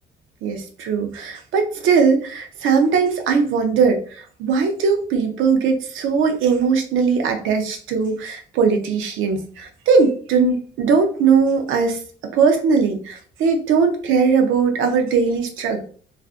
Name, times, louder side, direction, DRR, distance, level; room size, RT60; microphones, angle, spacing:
voice 1, 0.4-12.0 12.3-15.8, right 5 dB, 85° right, 5 dB, 0.5 m, -19 dB
2.5 x 2.3 x 2.4 m, 0.43 s
cardioid pair, 90°, 20 cm